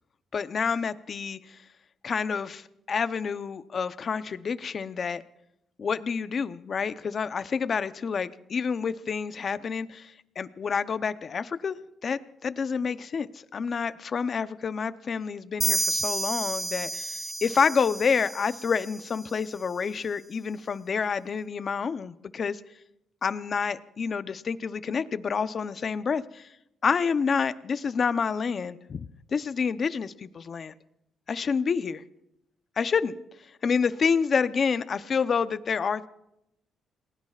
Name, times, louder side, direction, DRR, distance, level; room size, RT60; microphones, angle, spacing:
voice 1, 0.3-1.6 2.0-5.2 5.8-22.6 23.2-26.5 26.8-30.7 31.3-32.0 32.8-33.2 33.6-36.1, left 6 dB, 45° left, 13 dB, 0.7 m, -28 dB
sound 1, 15.6-19.2, right 1 dB, 15° right, 1.2 m, -31 dB
29.0 x 20.5 x 2.5 m, 0.83 s
cardioid pair, 90°, 0 cm